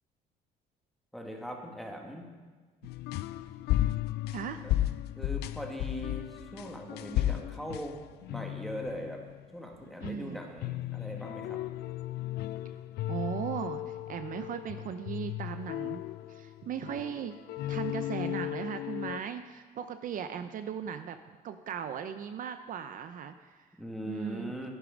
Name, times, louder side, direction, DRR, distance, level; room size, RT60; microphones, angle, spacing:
voice 1, 1.1-2.3 4.6-4.7 5.2-8.0 8.3-9.2 9.5-11.6 23.8-24.7, equal, ahead, 1 dB, 1.8 m, -40 dB
sound 1, 2.8-9.5 9.8-19.2, left 14 dB, 75° left, 0.4 m, -35 dB
voice 2, 4.3-4.6 10.0-10.4 13.1-16.0 16.3-17.3 17.7-23.7 24.0-24.5, right 8 dB, 55° right, 9 dB, 0.6 m, -38 dB
11.0 x 10.0 x 5.2 m, 1.4 s
cardioid pair, 110°, 17 cm